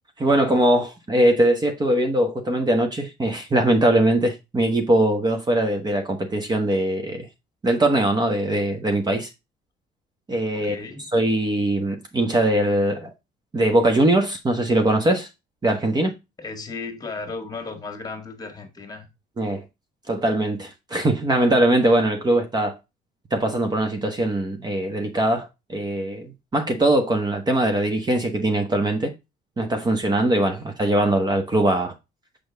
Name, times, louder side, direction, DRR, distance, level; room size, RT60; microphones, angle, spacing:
voice 1, 0.2-7.3 7.6-9.3 10.3-10.7 11.1-13.1 13.5-15.3 15.6-16.1 19.4-19.6 20.1-22.7 23.3-29.1 29.6-31.9, right 1 dB, 25° right, 1.2 m, -21 dB
voice 2, 10.5-11.1 16.4-19.1, left 4 dB, 20° left, 1.8 m, -35 dB
6.3 x 5.3 x 3.5 m
cardioid pair, 110°, 17 cm